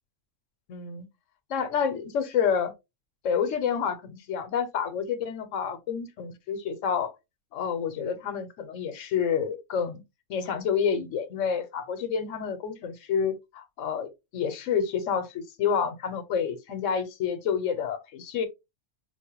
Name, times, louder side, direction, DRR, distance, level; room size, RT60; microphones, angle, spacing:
voice 1, 0.7-1.1 1.5-2.7 3.2-7.1 7.5-10.0 10.3-18.5, left 7 dB, 70° left, 1.0 m, -29 dB
4.7 x 2.1 x 2.8 m
omnidirectional pair, 1.4 m